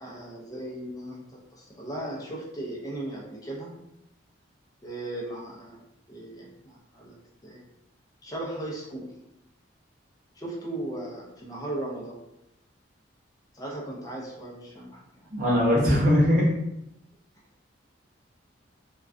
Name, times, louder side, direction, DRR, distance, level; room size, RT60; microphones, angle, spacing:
voice 1, 0.0-3.8 4.8-5.8 6.1-7.6 8.2-9.2 10.4-12.2 13.5-15.3, right 1 dB, 20° left, -4 dB, 0.4 m, -37 dB
voice 2, 15.3-16.5, left 1 dB, 40° right, -6 dB, 0.7 m, -20 dB
2.3 x 2.2 x 2.4 m, 0.84 s
head